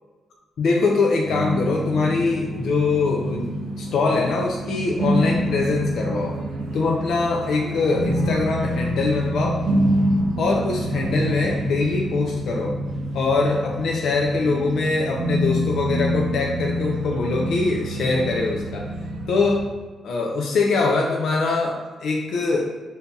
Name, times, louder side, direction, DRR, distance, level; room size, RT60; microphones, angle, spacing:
voice 1, 0.6-6.4 6.7-9.7 10.4-12.7 13.1-18.9 19.3-19.7 20.0-22.6, left 3 dB, 70° left, -1 dB, 0.4 m, -23 dB
sound 1, 1.2-19.6, equal, 90° right, 0.6 m, -27 dB
5.2 x 2.7 x 2.3 m, 1.4 s
wide cardioid pair, 155°, 0 cm